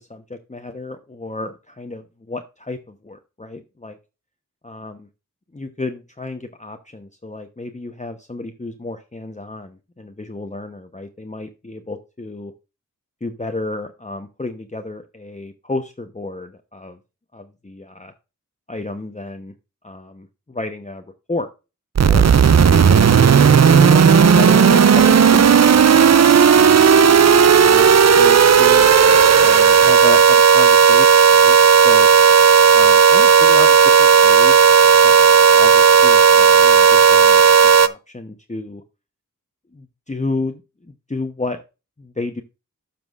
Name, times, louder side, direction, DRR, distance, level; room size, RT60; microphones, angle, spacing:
voice 1, 0.0-4.0 4.6-5.1 5.5-12.5 13.2-17.0 17.3-18.1 18.7-19.5 19.8-21.0 21.3-21.5 22.0-22.8 23.1-26.0 26.5-27.9 28.2-28.9 29.4-32.1 32.7-34.6 34.8-38.8 39.7-41.6 42.0-42.4, left 2 dB, 20° left, 6 dB, 0.8 m, -31 dB
sound 1, 22.0-37.9, right 6 dB, 55° right, 0.5 m, -11 dB
12.0 x 6.0 x 2.4 m, 0.29 s
wide cardioid pair, 50°, 32 cm